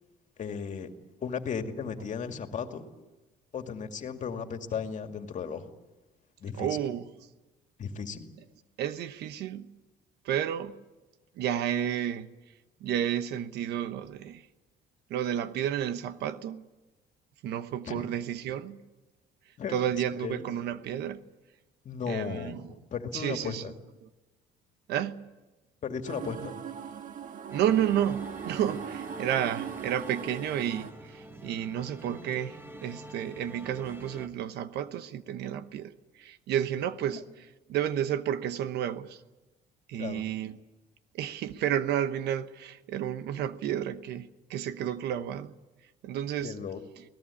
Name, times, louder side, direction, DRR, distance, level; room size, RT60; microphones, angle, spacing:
voice 1, 0.4-0.9 1.2-2.8 3.5-5.7 6.4-6.7 7.8-8.2 17.9-18.1 19.6-19.7 20.2-20.4 21.8-23.7 25.8-26.6 40.0-40.2 46.4-46.8, left 6 dB, 45° left, 2.3 m, -35 dB
voice 2, 6.5-7.3 8.8-9.8 10.2-10.8 11.4-12.3 12.8-14.5 15.1-16.7 17.4-18.9 19.7-21.2 22.1-22.7 23.1-23.6 24.0-24.1 24.9-25.3 27.5-39.2 39.9-40.6 41.1-45.5 46.0-46.6 47.0-47.1, right 10 dB, 75° right, 1.1 m, -31 dB
sound 1, 26.1-30.9, right 8 dB, 50° right, 1.5 m, -40 dB
sound 2, 27.5-34.3, equal, 15° right, 1.9 m, -47 dB
24.0 x 18.5 x 8.5 m
cardioid pair, 110°, 17 cm